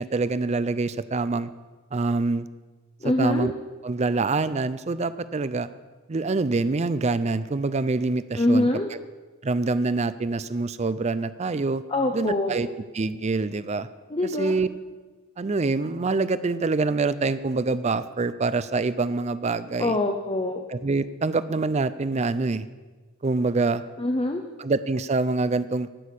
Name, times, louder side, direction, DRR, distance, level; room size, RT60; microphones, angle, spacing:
voice 1, 0.0-1.5 1.9-2.5 3.2-3.5 3.8-5.7 6.1-8.7 9.4-11.8 12.1-12.7 12.9-13.9 14.4-14.7 15.4-20.0 20.7-22.7 23.2-23.8 24.6-25.9, right 3 dB, 30° right, 14 dB, 0.4 m, -25 dB
voice 2, 3.0-3.5 8.4-8.9 11.9-12.6 14.1-14.5 19.8-20.6 24.0-24.4, left 1 dB, 25° left, 4 dB, 0.7 m, -24 dB
12.0 x 6.3 x 8.4 m, 1.3 s
head